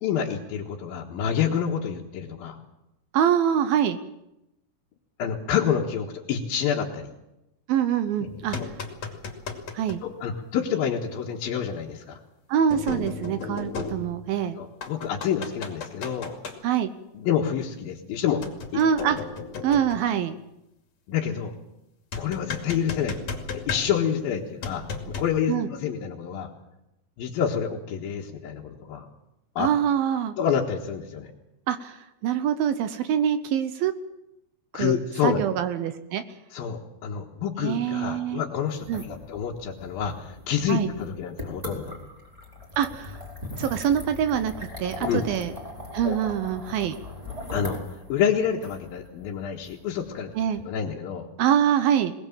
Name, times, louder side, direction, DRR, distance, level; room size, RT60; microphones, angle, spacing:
voice 1, 0.0-2.6 5.2-7.1 10.0-12.2 14.6-16.4 17.1-18.4 19.1-19.2 21.1-21.5 22.2-23.2 23.5-26.5 27.2-29.1 29.6-29.7 30.4-31.3 34.7-35.4 36.5-41.9 45.0-45.2 46.0-46.2 47.5-47.8 48.1-50.3 50.6-51.3, left 8 dB, 65° left, -3 dB, 3.0 m, -28 dB
voice 2, 3.1-4.0 7.7-8.6 9.7-10.0 12.5-14.6 16.6-16.9 18.8-19.2 19.6-20.4 25.5-25.7 29.6-30.3 31.7-33.9 34.7-35.0 35.2-36.2 37.6-38.4 38.9-39.0 40.7-40.9 42.8-43.2 43.6-45.5 45.9-47.0 50.4-50.6 51.4-52.1, right 9 dB, 75° right, 11 dB, 2.3 m, -24 dB
sound 1, 8.2-10.0 11.4-11.5 12.7-14.4 14.8-16.6 18.4-20.1 22.1-24.2 24.6-25.4, left 4 dB, 45° left, 3.0 m, -35 dB
sound 2, 38.7-50.6, left 1 dB, 10° right, 4.2 m, -40 dB
21.5 x 20.0 x 7.4 m, 0.90 s
omnidirectional pair, 5.1 m